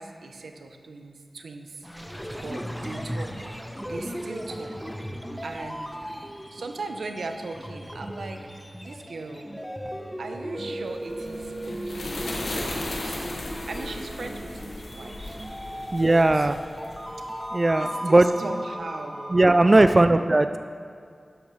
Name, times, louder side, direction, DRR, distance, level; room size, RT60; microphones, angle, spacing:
voice 1, 0.0-2.1 2.4-3.6 3.8-6.0 6.5-8.4 8.8-9.5 10.2-12.2 12.5-16.5 17.3-17.5 17.8-19.4 19.7-20.1, right 3 dB, 90° right, 5 dB, 0.7 m, -39 dB
sound 1, 1.8-19.9, equal, ahead, 0.9 m, -37 dB
sound 2, 10.9-17.6, left 2 dB, 85° left, 1.6 m, -36 dB
voice 2, 15.9-16.6 17.5-18.3 19.3-20.6, right 2 dB, 35° right, 10 dB, 0.3 m, -18 dB
12.0 x 10.5 x 3.2 m, 2.2 s
cardioid pair, 50°, 0 cm